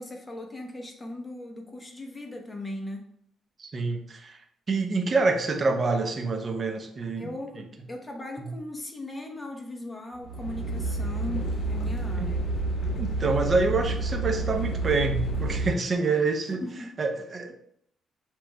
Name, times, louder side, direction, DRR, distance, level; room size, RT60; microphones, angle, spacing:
voice 1, 0.0-3.1 7.2-12.5 16.6-17.0, left 1 dB, 15° left, 2 dB, 0.8 m, -38 dB
voice 2, 3.6-4.4 4.7-7.3 8.4-8.5 12.2-12.3 13.0-16.6 17.0-17.5, right 3 dB, 40° right, 6 dB, 0.6 m, -26 dB
sound 1, 10.2-15.7, right 2 dB, 60° left, 1.0 m, -29 dB
6.0 x 3.0 x 2.2 m, 0.71 s
cardioid pair, 90°, 0 cm